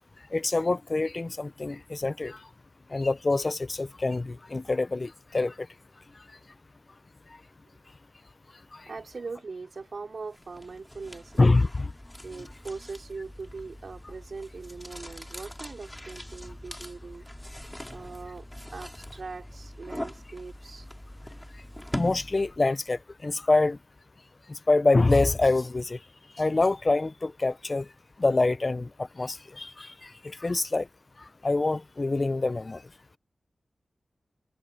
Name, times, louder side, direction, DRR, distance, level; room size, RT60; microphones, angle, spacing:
voice 1, 0.3-2.5 2.9-5.7 8.7-8.9 11.4-11.9 21.9-23.8 24.5-26.0 26.4-27.9 28.2-30.9 31.2-32.8, left 3 dB, 40° left, 0.5 m, -26 dB
voice 2, 8.9-11.7 12.2-17.3 17.9-18.5 18.7-20.9, right 4 dB, 65° right, 2.9 m, -41 dB
sound 1, 10.3-22.7, left 1 dB, 10° left, 4.3 m, -42 dB
wide cardioid pair, 65°, 0 cm